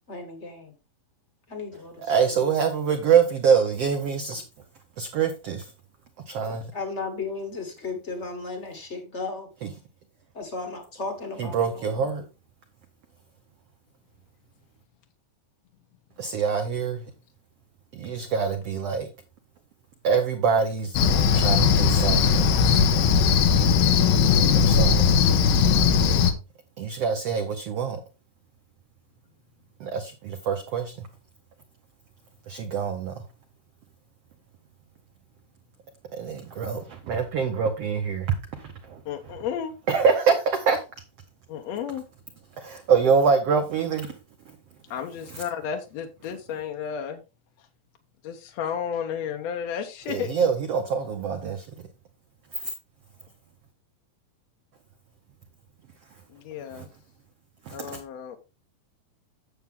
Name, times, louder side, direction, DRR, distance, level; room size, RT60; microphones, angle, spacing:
voice 1, 0.1-0.7 1.5-2.1 6.7-9.5 10.3-12.0, left 3 dB, 35° left, 1.1 m, -35 dB
voice 2, 2.0-4.4 5.0-5.7 6.3-6.7 9.6-9.7 11.4-12.3 16.2-17.1 17.9-19.1 20.0-21.0 21.3-22.5 24.5-25.2 26.8-28.0 29.8-31.1 32.5-33.2 36.1-39.0 39.9-40.8 42.6-44.2 44.5-44.6 45.3-45.4 50.1-51.9 52.6-52.7 56.7-56.9 57.6-58.0, right 6 dB, 70° right, 1.5 m, -25 dB
Cricket, 21.0-26.3, left 6 dB, 85° left, 2.8 m, -19 dB
voice 3, 39.0-39.7 41.5-42.0 44.9-47.2 48.2-50.3 56.3-56.9 57.7-58.4, left 8 dB, 70° left, 1.7 m, -32 dB
9.3 x 7.2 x 3.7 m
omnidirectional pair, 4.0 m